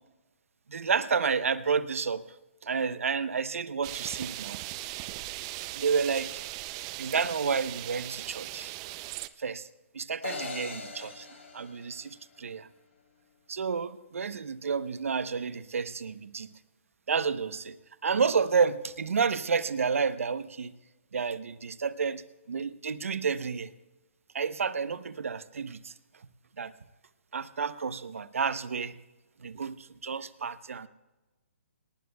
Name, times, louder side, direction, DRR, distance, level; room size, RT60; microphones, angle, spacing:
voice 1, 0.7-2.2 2.6-4.6 5.7-6.4 7.0-8.7 9.4-9.7 9.9-11.3 11.5-12.6 13.5-16.5 17.1-17.8 18.0-20.8 21.1-22.2 22.5-23.7 24.3-25.9 26.6-26.7 27.3-29.0 29.4-30.9, right 5 dB, 75° right, 13 dB, 0.9 m, -30 dB
sound 1, 3.8-9.3, right 17 dB, 25° right, 0.5 m, -39 dB
sound 2, 10.2-12.6, left 4 dB, 70° left, 4.5 m, -41 dB
27.5 x 19.0 x 2.3 m, 1.2 s
hypercardioid pair, 150°, 7 cm